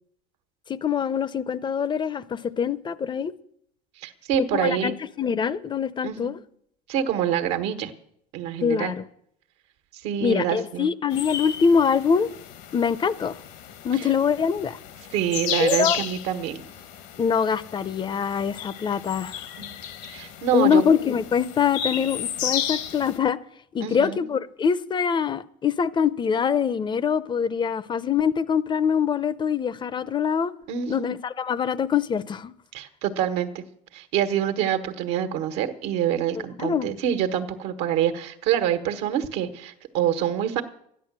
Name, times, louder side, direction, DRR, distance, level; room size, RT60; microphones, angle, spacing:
voice 1, 0.7-3.3 4.4-6.4 8.6-9.0 10.2-12.3 12.7-13.4 13.8-14.8 15.6-16.0 17.2-19.4 20.5-23.4 23.7-30.5 30.9-32.5 36.4-36.9, left 7 dB, 25° left, 0.7 m, -24 dB
voice 2, 4.0-5.0 6.0-6.3 6.9-7.9 8.3-8.9 10.0-10.9 15.1-16.6 19.6-19.8 20.1-20.8 23.8-24.2 30.7-31.1 32.7-33.6 33.9-40.6, right 10 dB, 75° right, 1.4 m, -26 dB
sound 1, 11.1-23.2, left 9 dB, 70° left, 1.5 m, -34 dB
13.0 x 10.5 x 7.4 m
cardioid pair, 115°, 17 cm